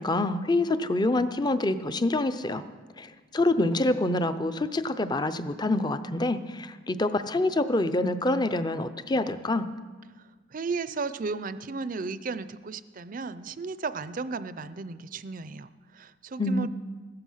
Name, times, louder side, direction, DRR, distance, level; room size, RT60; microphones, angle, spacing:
voice 1, 0.0-2.6 3.0-9.7 16.4-16.7, left 2 dB, 20° left, 11 dB, 0.5 m, -26 dB
voice 2, 10.5-16.7, right 4 dB, 45° right, 14 dB, 0.5 m, -34 dB
15.5 x 13.5 x 5.6 m, 1.4 s
head